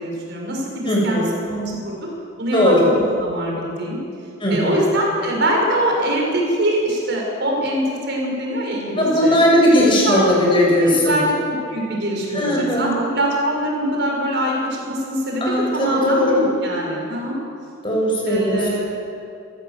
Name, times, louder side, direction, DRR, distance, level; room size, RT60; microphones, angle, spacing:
voice 1, 0.0-2.0 2.4-4.0 4.5-9.4 9.7-10.2 10.8-17.4 18.3-18.9, right 1 dB, 60° right, -1 dB, 6.3 m, -23 dB
voice 2, 0.8-1.3 2.5-2.9 4.4-4.8 9.0-11.2 12.3-13.0 15.4-16.4 17.8-18.7, equal, 25° left, -3 dB, 7.3 m, -18 dB
28.0 x 16.0 x 7.7 m, 2.5 s
head